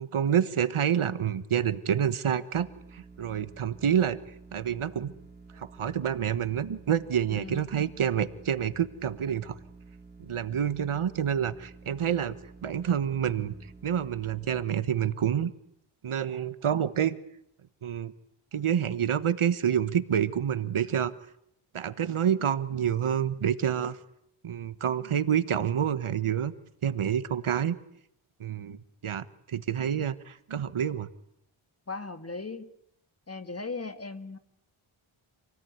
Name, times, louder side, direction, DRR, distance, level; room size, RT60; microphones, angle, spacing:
voice 1, 0.0-2.7 2.9-4.2 4.5-5.1 5.6-9.5 10.2-12.3 12.6-13.5 13.8-15.5 16.0-17.2 17.8-18.1 18.5-21.1 21.7-24.0 24.4-26.5 26.8-27.7 28.4-28.8 29.0-31.1, right 9 dB, 75° right, 14 dB, 1.3 m, -28 dB
sound 1, 2.5-14.6, right 4 dB, 20° right, 2.4 m, -51 dB
voice 2, 7.3-7.7 31.9-32.7 33.3-34.4, left 3 dB, 30° left, 9 dB, 1.9 m, -38 dB
28.0 x 18.5 x 9.4 m, 0.78 s
wide cardioid pair, 120°, 49 cm